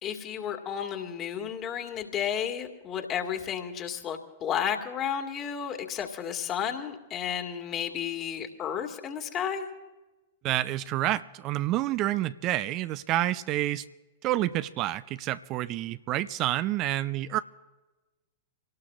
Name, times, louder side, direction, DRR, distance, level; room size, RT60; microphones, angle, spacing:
voice 1, 0.0-9.6, left 8 dB, 30° left, 4 dB, 1.9 m, -32 dB
voice 2, 10.4-13.8 14.2-17.4, right 14 dB, 35° right, 13 dB, 0.4 m, -28 dB
27.0 x 18.0 x 2.4 m, 1.2 s
figure-of-eight pair, 100°, 0 cm